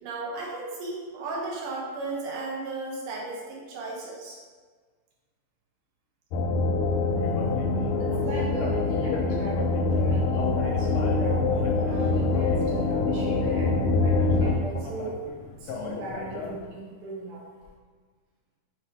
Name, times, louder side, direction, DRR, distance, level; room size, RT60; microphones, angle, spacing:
voice 1, 0.0-4.4, right 3 dB, 85° right, -3 dB, 2.7 m, -34 dB
sound 1, 6.3-14.5, left 3 dB, 90° left, 2.2 m, -25 dB
sound 2, 7.0-16.7, left 3 dB, 75° left, 1.6 m, -38 dB
voice 2, 8.0-15.1 15.7-17.4, right 1 dB, 70° right, -3 dB, 2.7 m, -38 dB
6.3 x 3.3 x 4.7 m, 1.5 s
omnidirectional pair, 3.6 m